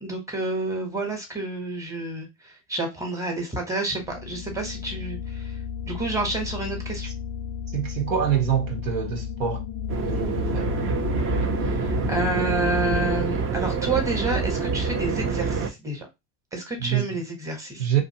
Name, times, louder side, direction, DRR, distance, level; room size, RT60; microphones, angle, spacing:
voice 1, 0.0-5.6 5.9-7.1 11.6-16.1 16.5-17.9, right 2 dB, 10° right, 1.0 m, -29 dB
sound 1, 4.0-13.2, left 8 dB, 35° left, 0.4 m, -33 dB
voice 2, 7.7-9.6 10.1-10.7 16.8-17.1 17.8-18.0, right 9 dB, 80° right, 1.1 m, -25 dB
sound 2, 9.9-15.7, right 4 dB, 35° right, 0.6 m, -26 dB
2.7 x 2.5 x 2.7 m
hypercardioid pair, 95°, 37 cm